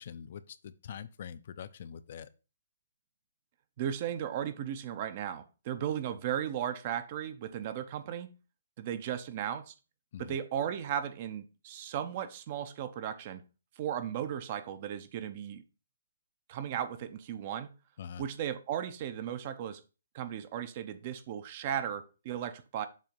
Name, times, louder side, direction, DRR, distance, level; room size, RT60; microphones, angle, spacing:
voice 1, 0.0-2.3 10.1-10.4 18.0-18.2, left 8 dB, 50° left, 0.5 m, -44 dB
voice 2, 3.8-8.3 8.8-9.7 10.2-13.4 13.8-15.6 16.5-17.7 18.2-19.8 20.1-22.9, right 9 dB, 40° right, 0.6 m, -36 dB
7.4 x 2.8 x 5.2 m
hypercardioid pair, 150°, 0 cm